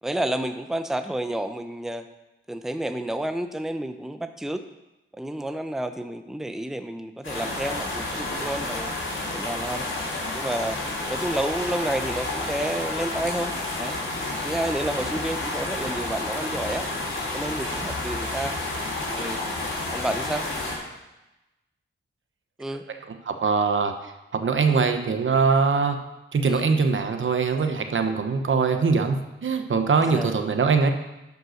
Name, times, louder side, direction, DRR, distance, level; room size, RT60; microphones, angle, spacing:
voice 1, 0.0-2.1 2.5-4.6 5.2-8.9 9.3-9.9 10.3-10.8 11.1-14.0 14.4-16.9 17.3-18.6 19.1-19.4 19.9-20.5 22.6-22.8 24.7-24.8 26.5-26.7 30.0-30.4, right 1 dB, ahead, 8 dB, 0.6 m, -30 dB
sound 1, 7.2-20.8, left 2 dB, 70° left, 3.3 m, -30 dB
voice 2, 23.2-26.0 26.3-30.9, right 5 dB, 70° right, 6 dB, 1.0 m, -22 dB
10.5 x 5.4 x 6.4 m, 0.98 s
wide cardioid pair, 75°, 21 cm